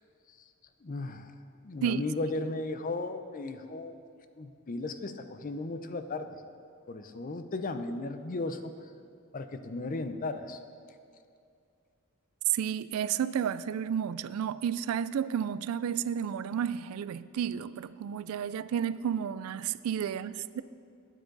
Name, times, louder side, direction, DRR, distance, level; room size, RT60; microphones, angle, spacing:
voice 1, 0.8-1.3 1.6-4.0 4.4-6.4 6.9-8.9 9.3-10.6, left 2 dB, 40° left, 0.5 m, -35 dB
voice 2, 12.5-20.6, right 8 dB, 90° right, 0.3 m, -32 dB
12.5 x 9.2 x 3.9 m
head